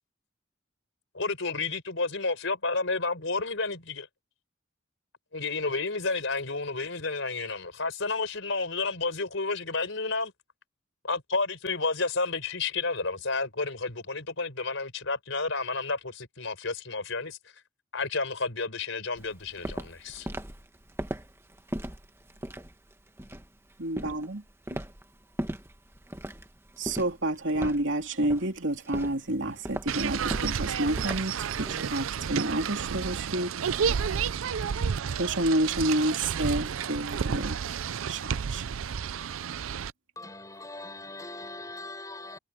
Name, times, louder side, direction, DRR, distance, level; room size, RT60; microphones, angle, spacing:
voice 1, 1.1-4.1 5.3-10.3 11.0-17.4 17.9-20.3, left 3 dB, 70° left, 4.6 m, -31 dB
Walk footsteps, 19.2-31.9, right 1 dB, 15° right, 1.5 m, -39 dB
voice 2, 23.8-24.4 26.8-34.2 35.2-37.8 38.1-38.7, right 1 dB, 65° right, 3.1 m, -29 dB
sound 1, 29.9-39.9, right 7 dB, 90° right, 0.5 m, -31 dB
voice 3, 40.2-42.4, left 2 dB, 15° left, 4.4 m, -41 dB
head